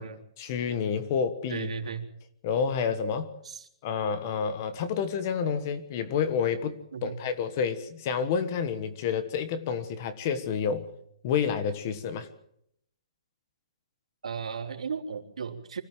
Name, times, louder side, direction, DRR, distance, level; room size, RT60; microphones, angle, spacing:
voice 1, 0.4-1.7 2.4-3.3 3.8-10.9 11.2-12.3, left 6 dB, 25° left, 12 dB, 1.3 m, -29 dB
voice 2, 1.5-2.1 3.4-3.7 6.9-7.2 14.2-15.8, right 6 dB, 90° right, 4 dB, 3.5 m, -35 dB
25.5 x 15.0 x 7.6 m, 0.73 s
hypercardioid pair, 180°, 3 cm